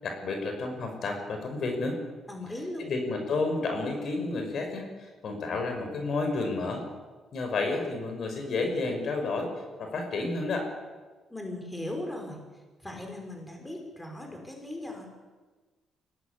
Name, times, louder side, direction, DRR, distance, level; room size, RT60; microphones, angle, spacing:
voice 1, 0.0-2.0 2.8-6.8 7.3-9.5 9.8-10.7, left 3 dB, 60° left, 4 dB, 5.9 m, -31 dB
voice 2, 2.3-2.8 11.3-12.4 12.8-15.1, left 1 dB, 10° left, 2 dB, 5.8 m, -38 dB
23.5 x 18.0 x 8.5 m, 1.3 s
cardioid pair, 90°, 0 cm